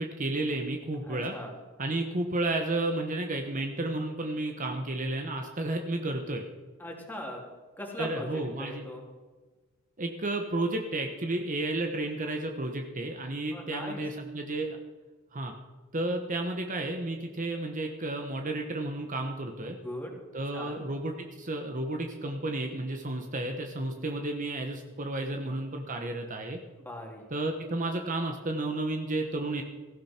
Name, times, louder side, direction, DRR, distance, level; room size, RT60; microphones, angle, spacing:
voice 1, 0.0-1.3 1.8-6.4 8.0-8.9 10.0-14.8 15.3-15.5 15.9-19.8 20.3-26.6 27.3-29.6, right 2 dB, 40° right, 3 dB, 1.2 m, -32 dB
voice 2, 1.0-1.5 6.8-7.4 7.8-9.0 13.5-14.0 19.6-20.1 20.5-20.8 26.8-27.3, left 1 dB, 10° left, 0 dB, 2.9 m, -40 dB
17.5 x 15.5 x 4.5 m, 1.3 s
head